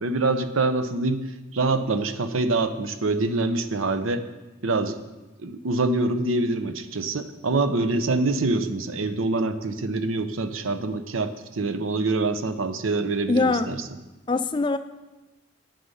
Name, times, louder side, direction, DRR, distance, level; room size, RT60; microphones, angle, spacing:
voice 1, 0.0-1.3 1.5-4.3 4.6-5.0 5.4-13.8, right 3 dB, 85° right, 10 dB, 0.8 m, -25 dB
voice 2, 13.3-13.7 14.3-14.8, left 3 dB, 25° left, 11 dB, 0.4 m, -22 dB
9.7 x 8.7 x 5.5 m, 1.1 s
head